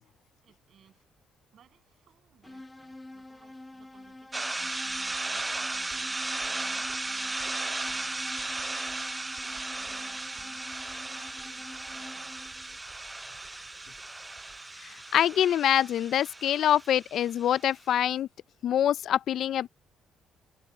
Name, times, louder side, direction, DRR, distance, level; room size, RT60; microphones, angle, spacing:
voice 1, 0.0-1.2 1.5-8.7 9.3-12.4, right 9 dB, 55° right, 7.1 m, -60 dB
sound 1, 2.4-12.8, left 2 dB, 10° left, 1.2 m, -48 dB
sound 2, 4.3-17.7, right 2 dB, 15° right, 0.4 m, -36 dB
sound 3, 4.6-14.6, right 5 dB, 30° right, 4.1 m, -60 dB
voice 2, 14.8-18.3 18.6-19.7, left 10 dB, 60° left, 0.4 m, -25 dB
cardioid pair, 120°, 0 cm